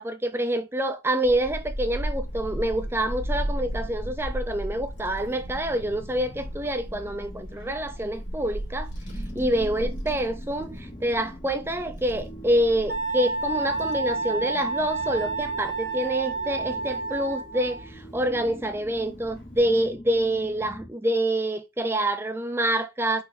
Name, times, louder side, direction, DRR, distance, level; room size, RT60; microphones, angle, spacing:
voice 1, 0.0-8.9 9.3-23.2, right 1 dB, 10° right, 0.4 m, -27 dB
Child speech kid speaking / Wind, 1.2-19.6, equal, 60° left, 1.7 m, -37 dB
sound 1, 8.9-20.9, equal, 20° left, 0.8 m, -43 dB
Wind instrument woodwind instrument, 12.9-17.9, right 3 dB, 55° right, 1.0 m, -30 dB
4.1 x 2.7 x 4.1 m
head